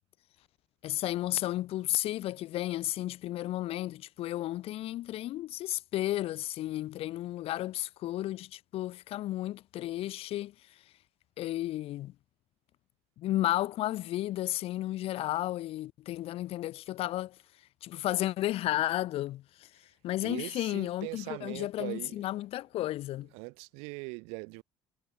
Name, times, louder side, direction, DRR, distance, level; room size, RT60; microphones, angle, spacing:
voice 1, 0.8-10.5 11.4-12.1 13.2-17.3 17.8-19.7 20.0-23.3, left 15 dB, 70° left, 1.7 m, -33 dB
voice 2, 20.2-22.3 23.2-24.6, right 32 dB, 85° right, 4.0 m, -41 dB
supercardioid pair, 70°, 10 cm